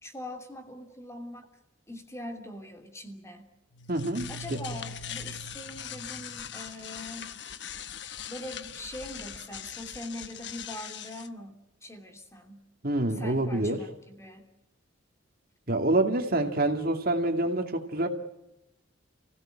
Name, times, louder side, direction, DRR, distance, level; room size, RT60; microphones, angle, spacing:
voice 1, 0.0-1.5 1.9-3.5 4.3-7.4 8.3-12.7 13.1-14.5, left 1 dB, 15° left, 5 dB, 2.9 m, -42 dB
sound 1, 3.7-11.3, left 7 dB, 60° left, 1.1 m, -41 dB
voice 2, 3.9-4.3 12.8-13.8 15.7-18.1, right 2 dB, 50° right, 4 dB, 2.5 m, -26 dB
29.5 x 17.0 x 8.8 m, 0.92 s
head